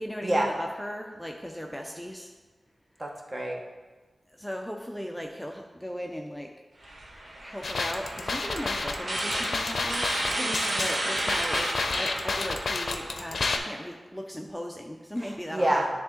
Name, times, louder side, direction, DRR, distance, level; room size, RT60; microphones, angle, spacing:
voice 1, 0.0-2.3 4.3-6.5 7.4-10.2 10.8-15.9, equal, 5° left, 2 dB, 0.4 m, -37 dB
voice 2, 3.0-3.6 10.4-10.8 15.2-15.9, right 1 dB, 35° right, 0 dB, 1.0 m, -28 dB
sound 1, 6.8-13.3, right 1 dB, 65° right, 1.3 m, -32 dB
sound 2, 7.6-13.6, left 3 dB, 75° left, 0.5 m, -30 dB
10.0 x 3.5 x 3.7 m, 1.3 s
wide cardioid pair, 105°, 0 cm